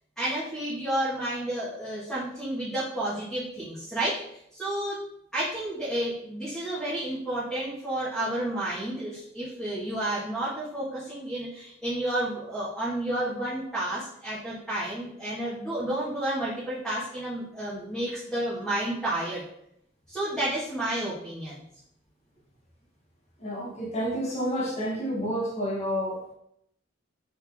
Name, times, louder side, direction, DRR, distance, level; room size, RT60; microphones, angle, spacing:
voice 1, 0.2-5.0 5.3-19.4 20.1-21.6, right 1 dB, ahead, -11 dB, 1.7 m, -31 dB
voice 2, 23.4-26.3, equal, 35° left, -3 dB, 1.5 m, -30 dB
6.2 x 4.3 x 3.6 m, 0.75 s
head